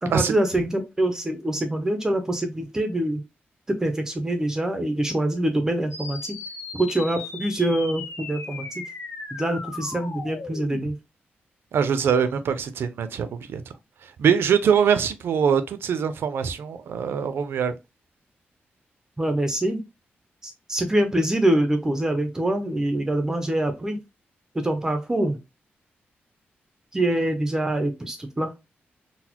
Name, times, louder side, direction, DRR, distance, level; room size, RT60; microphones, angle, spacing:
voice 1, 0.0-3.2 3.7-6.4 6.7-8.8 9.3-10.9 19.2-19.8 20.4-24.0 24.5-25.4 26.9-28.5, right 1 dB, 15° right, 0.4 m, -25 dB
sound 1, 5.9-10.9, left 4 dB, 70° left, 0.6 m, -37 dB
voice 2, 11.7-13.6 14.2-17.7, right 7 dB, 75° right, 0.5 m, -23 dB
4.0 x 2.1 x 2.8 m
wide cardioid pair, 175°, 4 cm